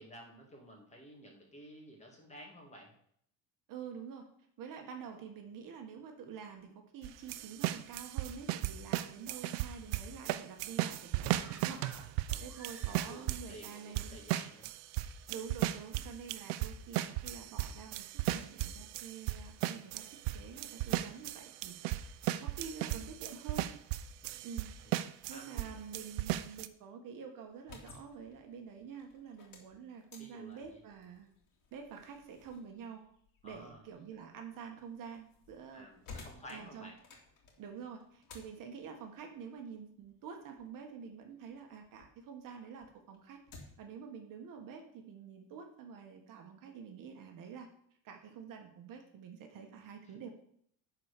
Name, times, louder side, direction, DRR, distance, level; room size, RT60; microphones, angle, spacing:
voice 1, 0.0-2.9 11.7-12.5 12.8-14.7 24.3-24.4 24.8-25.0 25.3-25.6 30.2-30.8 33.4-33.8 35.7-37.0 49.5-49.8, equal, 15° left, 0 dB, 2.3 m, -53 dB
voice 2, 3.7-4.3 4.6-11.8 12.4-14.2 15.3-23.7 24.4-24.7 25.0-31.3 31.7-33.0 33.4-35.9 36.5-36.9 37.6-43.4 43.8-47.7 48.0-50.3, right 6 dB, 50° right, 4 dB, 1.6 m, -48 dB
sound 1, 7.0-25.7 25.9-26.7, right 14 dB, 85° right, 0.7 m, -36 dB
sound 2, 11.3-13.5 13.8-13.9, right 1 dB, 5° right, 1.1 m, -55 dB
sound 3, 27.5-42.2 42.6-43.9, left 4 dB, 50° left, 2.7 m, -57 dB
10.5 x 4.6 x 6.7 m, 0.66 s
cardioid pair, 145°, 41 cm